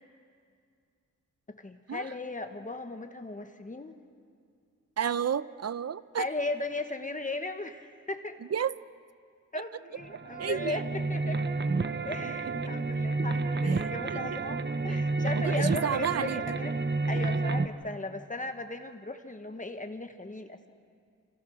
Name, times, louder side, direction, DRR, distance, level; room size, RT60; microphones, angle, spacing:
voice 1, 1.5-3.9 6.2-8.4 9.5-11.4 12.1-16.8 17.1-20.7, left 2 dB, 25° left, 7 dB, 1.3 m, -37 dB
voice 2, 5.0-6.3 8.5-8.8 10.4-10.8 13.6-14.2 14.9-15.0 15.4-16.4, right 8 dB, 55° right, 16 dB, 0.7 m, -31 dB
sound 1, 10.0-17.7, right 3 dB, 35° right, 1.0 m, -30 dB
29.0 x 27.0 x 6.4 m, 2.3 s
wide cardioid pair, 110°, 31 cm